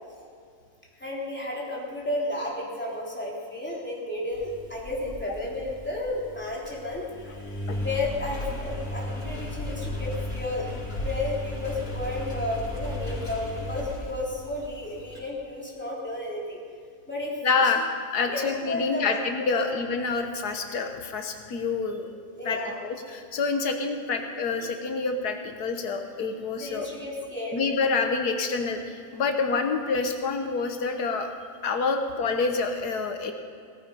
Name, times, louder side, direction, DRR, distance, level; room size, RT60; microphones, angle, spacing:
voice 1, 1.0-7.5 7.8-10.7 11.0-16.6 17.1-17.4 17.6-17.7 18.3-19.2 19.5-19.7 22.4-22.8 24.6-24.7 26.6-27.6, left 2 dB, 5° left, -5 dB, 3.5 m, -32 dB
Engine, 4.3-15.2, left 1 dB, 65° left, 5.1 m, -35 dB
voice 2, 17.4-22.1 22.5-26.9 27.5-31.3 31.6-33.3, left 4 dB, 85° left, 5 dB, 1.7 m, -27 dB
17.5 x 14.5 x 5.4 m, 2.4 s
omnidirectional pair, 1.6 m